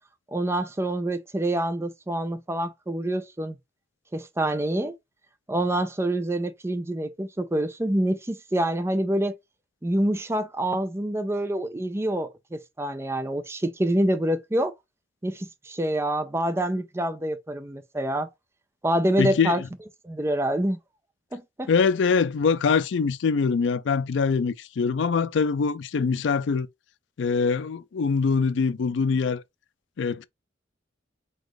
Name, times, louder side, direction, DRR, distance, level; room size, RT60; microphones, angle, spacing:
voice 1, 0.3-3.6 4.1-4.9 5.5-9.3 9.8-14.7 15.2-18.3 18.8-19.6 20.0-20.8 21.3-21.7, right 1 dB, 15° right, 0.5 m, -26 dB
voice 2, 19.2-19.7 21.7-26.7 27.2-29.4 30.0-30.3, left 5 dB, 70° left, 0.4 m, -23 dB
4.1 x 2.5 x 4.8 m
head